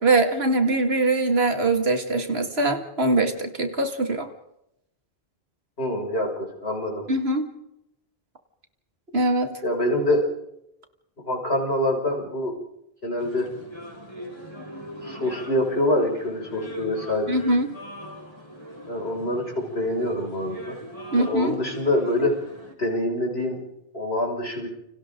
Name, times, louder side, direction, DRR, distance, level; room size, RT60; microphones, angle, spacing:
voice 1, 0.0-4.3 7.1-7.5 9.1-9.5 17.3-17.8 21.1-21.6, right 2 dB, 80° right, 6 dB, 2.6 m, -22 dB
voice 2, 5.8-6.3 6.6-7.0 9.6-10.2 11.2-12.5 13.0-13.5 15.0-17.3 18.9-20.7 21.1-22.3 22.8-23.6 23.9-24.7, left 1 dB, 85° left, 1 dB, 6.7 m, -25 dB
sound 1, 13.2-22.7, equal, 25° left, 4.6 m, -40 dB
29.5 x 26.0 x 3.9 m, 0.83 s
omnidirectional pair, 1.0 m